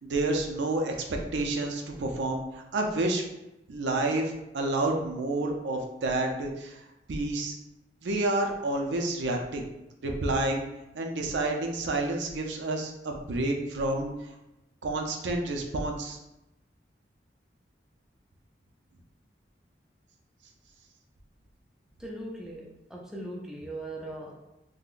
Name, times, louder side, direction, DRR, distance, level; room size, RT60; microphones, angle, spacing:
voice 1, 0.0-3.2 3.7-6.8 7.1-7.6 8.0-9.7 10.0-10.6 10.9-14.1 14.8-16.2, right 2 dB, 80° right, 2 dB, 0.4 m, -29 dB
voice 2, 22.0-24.5, right 1 dB, 5° right, -3 dB, 0.4 m, -39 dB
3.6 x 2.1 x 2.4 m, 0.93 s
head